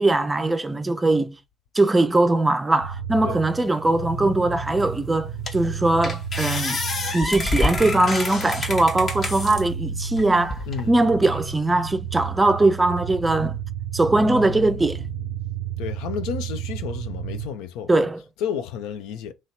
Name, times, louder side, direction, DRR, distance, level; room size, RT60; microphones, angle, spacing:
voice 1, 0.0-1.4 1.8-6.8 7.1-13.5 13.9-15.1 17.9-18.2, right 2 dB, 15° right, 0.5 m, -21 dB
sound 1, 2.8-17.5, right 7 dB, 80° right, 0.5 m, -32 dB
sound 2, 4.8-4.9 5.5-5.7 6.0-9.6 10.2-10.8, left 3 dB, 35° left, 0.9 m, -28 dB
voice 2, 10.7-11.0 15.8-18.1 18.4-19.3, left 8 dB, 60° left, 0.4 m, -31 dB
3.0 x 2.8 x 4.4 m
figure-of-eight pair, 55°, 0 cm